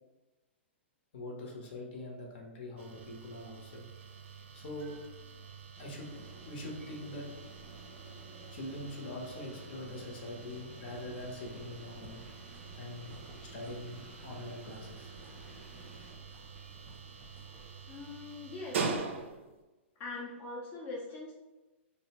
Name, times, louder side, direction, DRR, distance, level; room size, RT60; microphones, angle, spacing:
voice 1, 1.1-3.8 4.5-4.9 5.8-6.1 6.5-7.3 8.5-12.2 12.8-15.1, left 1 dB, 55° left, 0 dB, 0.7 m, -43 dB
sound 1, 2.8-19.6, right 5 dB, 70° right, 0.4 m, -44 dB
sound 2, 5.8-16.1, right 1 dB, ahead, 0.8 m, -54 dB
sound 3, 10.9-18.5, right 2 dB, 25° right, 0.6 m, -57 dB
voice 2, 17.9-19.0 20.0-21.4, left 3 dB, 25° left, -4 dB, 0.4 m, -42 dB
2.7 x 2.0 x 2.8 m, 1.1 s
hypercardioid pair, 135°, 7 cm